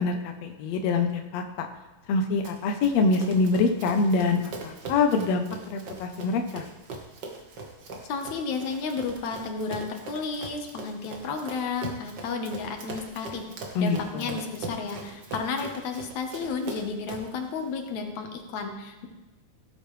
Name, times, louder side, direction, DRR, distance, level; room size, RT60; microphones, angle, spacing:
voice 1, 0.0-1.7 2.1-6.7 13.7-14.0 14.3-14.4, left 4 dB, 80° left, 5 dB, 1.5 m, -25 dB
Run, 2.4-17.4, right 3 dB, 85° right, 0.9 m, -41 dB
voice 2, 8.1-13.4 13.8-19.1, left 5 dB, 65° left, 4 dB, 2.2 m, -32 dB
17.0 x 8.8 x 3.2 m, 1.1 s
omnidirectional pair, 4.1 m